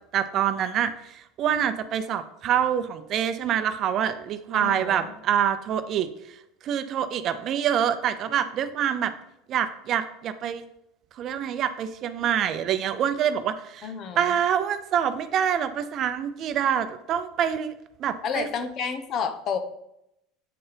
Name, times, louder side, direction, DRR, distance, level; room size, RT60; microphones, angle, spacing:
voice 1, 0.1-0.9 1.4-6.1 6.7-9.1 9.5-10.6 11.2-13.9 14.2-17.7 18.0-18.5, right 9 dB, 50° right, 10 dB, 0.5 m, -26 dB
voice 2, 4.5-5.1 13.8-14.4 18.2-19.6, left 6 dB, 45° left, 9 dB, 0.8 m, -30 dB
8.4 x 4.4 x 3.4 m, 0.81 s
supercardioid pair, 110°, 0 cm